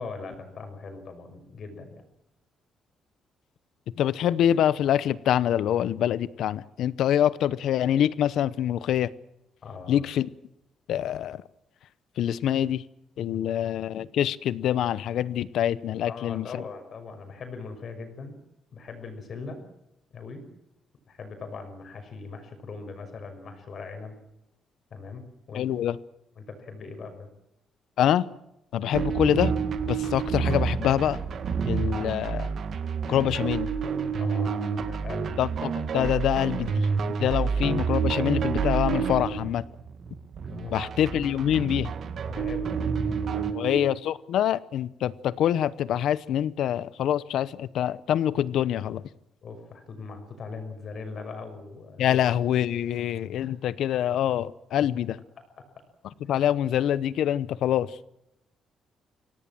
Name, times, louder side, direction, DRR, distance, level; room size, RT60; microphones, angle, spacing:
voice 1, 0.0-2.0 9.6-10.0 13.2-13.4 16.1-18.4 18.7-19.6 20.1-20.4 21.1-24.1 24.9-25.7 26.4-27.3 28.8-28.9 34.2-35.5 37.1-37.4 40.5-40.9 42.2-43.9 49.4-52.2 53.4-53.5, left 4 dB, 50° left, 6 dB, 6.1 m, -40 dB
voice 2, 4.0-9.1 9.9-10.3 10.9-11.4 12.2-12.8 13.2-16.5 25.5-26.0 28.0-28.3 28.7-29.5 29.9-31.2 31.7-32.5 33.1-33.7 35.4-39.6 40.7-41.9 43.5-49.0 52.0-55.2 56.3-57.9, left 10 dB, 80° left, 18 dB, 0.8 m, -25 dB
sound 1, 28.9-43.5, right 5 dB, 55° right, 1.8 m, -30 dB
sound 2, 28.9-30.3 33.4-34.8 37.9-39.3 42.4-43.8, right 8 dB, 80° right, 6.7 m, -31 dB
25.0 x 17.5 x 7.6 m, 0.85 s
cardioid pair, 120°, 0 cm